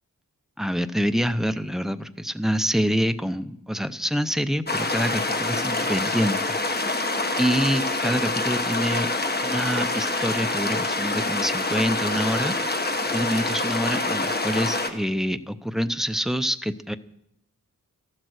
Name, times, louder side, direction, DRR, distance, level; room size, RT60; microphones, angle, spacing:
voice 1, 0.6-7.1 7.4-9.1 9.4-12.7 13.0-17.0, equal, ahead, 11 dB, 0.6 m, -26 dB
sound 1, 4.7-14.9, left 2 dB, 30° left, 1.3 m, -26 dB
14.0 x 12.5 x 6.4 m, 0.78 s
wide cardioid pair, 110°, 35 cm